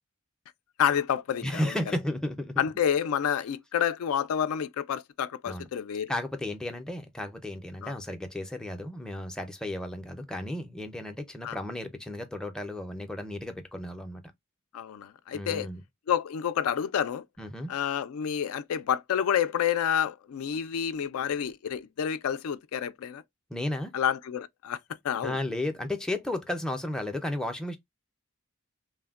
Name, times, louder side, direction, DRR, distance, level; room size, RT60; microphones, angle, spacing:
voice 1, 0.8-1.6 2.6-6.1 7.8-7.9 11.4-11.6 14.7-15.7 16.1-17.2 17.7-23.2 23.9-24.8 25.0-25.3, left 8 dB, 75° left, 0.3 m, -29 dB
voice 2, 1.4-2.7 5.5-5.7 6.1-14.2 15.3-15.8 17.4-17.7 23.5-24.0 25.2-27.8, left 1 dB, 5° left, 0.4 m, -33 dB
3.2 x 2.1 x 2.3 m
head